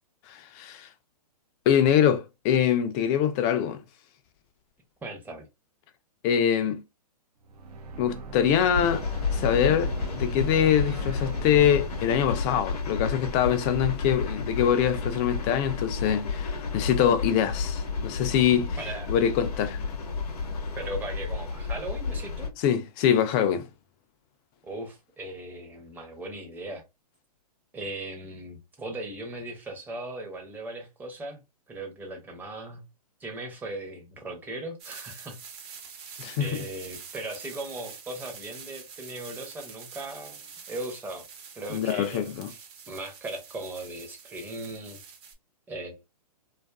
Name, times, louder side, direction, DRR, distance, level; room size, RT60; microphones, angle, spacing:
voice 1, 0.3-0.9 1.7-3.8 6.2-6.8 8.0-9.1 9.3-18.8 19.1-19.8 22.6-23.7 36.2-36.5 41.7-42.5, left 9 dB, 25° left, 0.4 m, -24 dB
voice 2, 5.0-5.5 18.8-19.1 20.8-22.5 24.6-26.8 27.7-32.8 33.2-35.4 36.4-40.4 40.7-41.2 41.5-42.6 42.9-45.0 45.7-46.0, right 2 dB, 10° right, 0.6 m, -38 dB
sound 1, 7.4-13.8, right 3 dB, 70° right, 0.7 m, -39 dB
sound 2, 8.7-22.5, left 4 dB, 70° left, 0.7 m, -31 dB
sound 3, 34.8-45.3, right 6 dB, 40° right, 0.8 m, -46 dB
2.5 x 2.4 x 2.3 m
hypercardioid pair, 125°, 20 cm